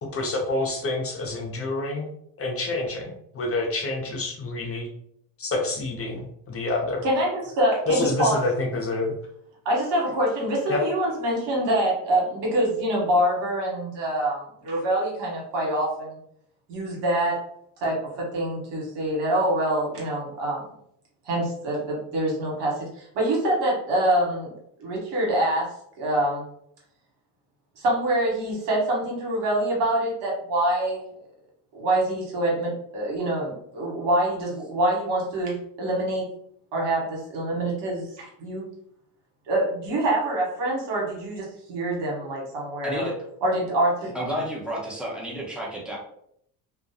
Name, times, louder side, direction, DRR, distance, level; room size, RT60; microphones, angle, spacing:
voice 1, 0.0-2.1 2.4-4.9 5.4-7.0 7.9-9.1 10.7-10.8, left 2 dB, 35° left, 1 dB, 0.6 m, -27 dB
voice 2, 7.0-8.4 9.6-16.2 16.7-17.4 17.8-20.6 21.2-24.5 24.8-25.7 26.0-26.4 27.8-31.0 31.7-36.2 36.7-38.6 39.5-43.1 43.4-44.1, right 1 dB, 80° right, -3 dB, 1.2 m, -25 dB
voice 3, 42.8-43.2 44.1-46.0, equal, ahead, -3 dB, 0.8 m, -31 dB
2.4 x 2.1 x 2.7 m, 0.69 s
supercardioid pair, 85°, 42 cm